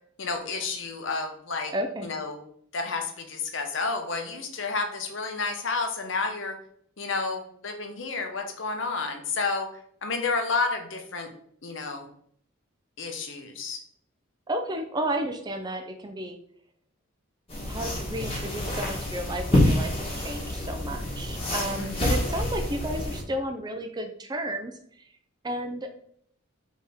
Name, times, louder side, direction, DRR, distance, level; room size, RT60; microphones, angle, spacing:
voice 1, 0.2-1.7 2.0-2.4 2.7-6.6 7.0-9.7 10.0-11.3 11.6-12.1 13.0-13.8 21.8-22.1, left 4 dB, 60° left, 5 dB, 0.7 m, -30 dB
voice 2, 1.7-2.1 14.5-16.4 17.7-25.0 25.4-25.9, right 1 dB, 20° right, 5 dB, 0.4 m, -32 dB
sound 1, 17.5-23.2, left 1 dB, 25° left, 1.2 m, -27 dB
4.2 x 3.5 x 3.5 m, 0.65 s
head